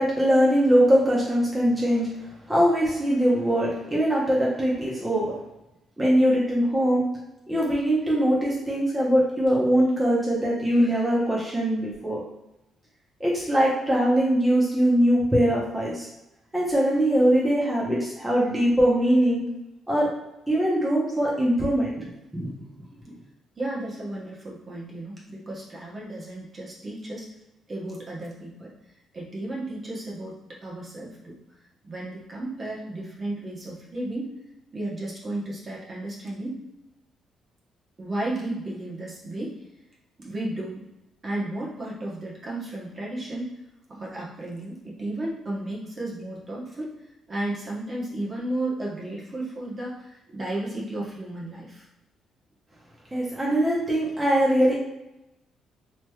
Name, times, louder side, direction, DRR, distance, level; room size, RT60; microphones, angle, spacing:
voice 1, 0.0-2.1 2.5-5.3 6.0-7.0 7.5-12.2 13.2-16.1 16.5-19.4 19.9-20.1 20.5-22.1 22.3-22.5 53.1-54.7, equal, 10° right, -6 dB, 0.8 m, -22 dB
voice 2, 23.6-27.3 27.7-28.7 29.1-30.3 30.6-31.4 31.8-34.3 34.7-36.6 38.0-39.6 40.2-40.9 41.2-43.5 43.9-46.9 47.3-51.8, right 1 dB, 35° right, -4 dB, 1.0 m, -33 dB
3.1 x 2.9 x 2.3 m, 0.93 s
cardioid pair, 90°, 0 cm